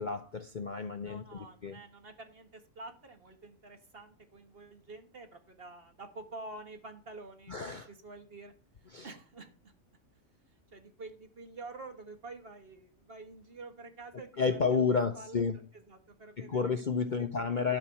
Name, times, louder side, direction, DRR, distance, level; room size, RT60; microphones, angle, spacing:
voice 1, 0.0-1.8 7.5-7.9 8.9-9.1 14.4-15.6 16.4-17.8, left 5 dB, 45° left, 0.7 m, -31 dB
voice 2, 1.0-8.5 9.0-9.7 10.7-15.4 15.7-17.3 17.5-17.8, right 2 dB, 45° right, 1.7 m, -48 dB
12.0 x 4.4 x 7.0 m
omnidirectional pair, 1.4 m